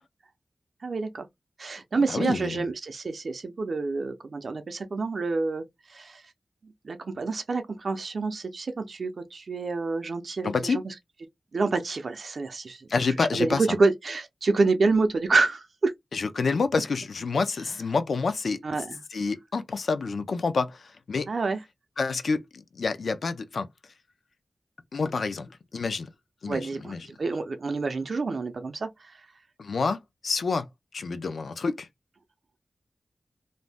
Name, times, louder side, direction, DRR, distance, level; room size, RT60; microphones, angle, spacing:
voice 1, 0.8-1.3 1.6-5.6 5.9-6.2 6.6-10.9 11.5-12.8 13.2-15.9 18.6-19.0 21.3-21.6 26.5-28.9, right 3 dB, 60° right, 0.5 m, -27 dB
voice 2, 1.9-2.7 10.4-10.8 12.9-13.6 16.1-18.6 19.1-21.3 22.0-23.7 24.9-25.5 25.7-26.1 26.4-27.1 29.6-30.7 30.9-31.9, left 4 dB, 75° left, 0.4 m, -28 dB
2.6 x 2.1 x 3.3 m
wide cardioid pair, 110°, 0 cm